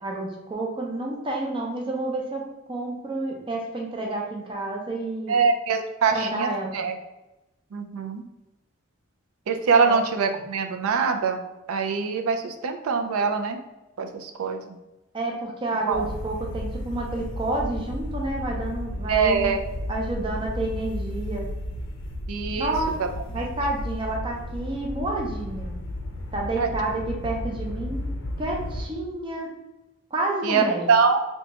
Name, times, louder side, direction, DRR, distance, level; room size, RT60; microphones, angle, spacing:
voice 1, 0.0-5.4 6.1-6.7 9.8-10.0 15.1-19.5 19.9-21.5 22.5-22.9 23.3-25.7 26.3-28.0 28.4-29.5 30.1-30.9, right 2 dB, 25° right, -1 dB, 0.5 m, -29 dB
voice 2, 5.3-6.9 7.7-8.2 9.5-11.4 11.7-13.6 14.0-14.8 15.9-16.0 19.1-19.6 22.3-22.7 23.0-23.1 23.4-23.5 26.6-26.7 30.4-31.3, right 5 dB, 85° right, 5 dB, 0.4 m, -23 dB
sound 1, 15.9-28.9, left 1 dB, 60° left, 0.5 m, -33 dB
2.8 x 2.2 x 4.1 m, 1.0 s
head